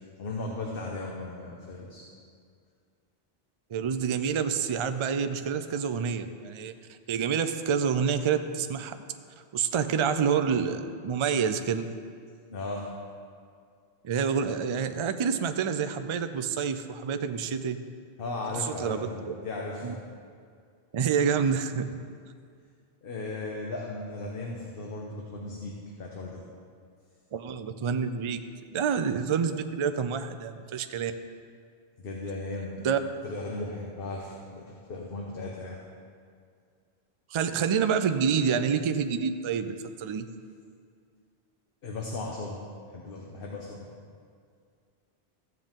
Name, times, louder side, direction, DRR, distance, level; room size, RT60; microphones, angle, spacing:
voice 1, 0.2-2.0 12.5-12.9 18.2-20.0 23.0-26.4 32.0-32.9 33.2-35.8 41.8-42.6 42.9-43.9, left 2 dB, 60° left, -1 dB, 1.2 m, -36 dB
voice 2, 3.7-6.7 7.1-9.0 9.5-11.9 14.0-17.8 18.5-19.3 19.8-19.9 20.9-21.9 27.3-28.4 28.7-31.1 32.8-33.0 37.3-40.3, right 6 dB, 50° right, 9 dB, 0.3 m, -28 dB
14.5 x 7.7 x 3.6 m, 2.2 s
omnidirectional pair, 1.1 m